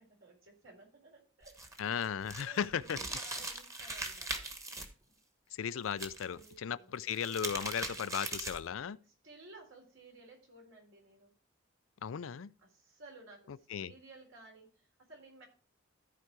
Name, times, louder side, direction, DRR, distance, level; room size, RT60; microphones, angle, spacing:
voice 1, 0.2-1.9 2.4-4.5 6.3-7.0 9.0-11.3 12.6-15.4, right 2 dB, 70° right, 3.9 m, -56 dB
sound 1, 1.4-4.8 5.9-6.5 7.0-8.7, right 2 dB, 15° right, 1.3 m, -40 dB
voice 2, 1.8-3.0 5.6-9.0 12.0-12.5 13.7-13.9, left 8 dB, 80° left, 0.4 m, -36 dB
14.0 x 4.9 x 4.6 m
head